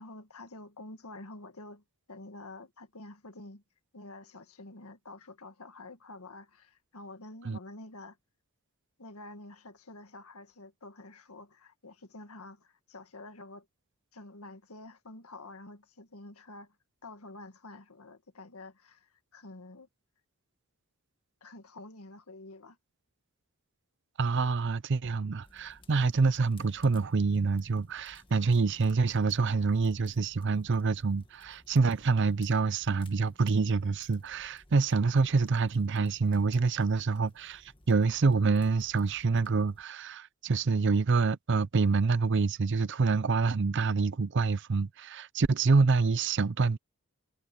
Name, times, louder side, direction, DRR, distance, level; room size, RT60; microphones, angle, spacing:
voice 1, 0.0-1.8 2.1-3.6 3.9-8.2 9.0-13.7 14.1-16.7 17.0-19.9 21.4-22.8, left 2 dB, 80° left, 1.8 m, -48 dB
voice 2, 24.2-46.8, right 4 dB, 55° right, 0.5 m, -27 dB
sound 1, 25.4-39.8, left 2 dB, 25° left, 1.7 m, -60 dB
head